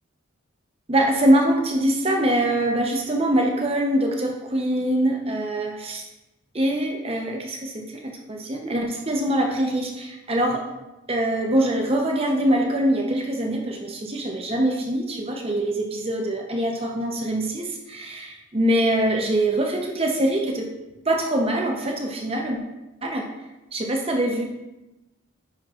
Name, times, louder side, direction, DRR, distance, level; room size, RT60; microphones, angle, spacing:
voice 1, 0.9-6.0 6.5-10.6 11.1-20.7 21.1-22.6 23.0-23.3 23.7-24.4, right 1 dB, 30° right, 1 dB, 0.7 m, -23 dB
9.5 x 5.9 x 2.4 m, 0.99 s
head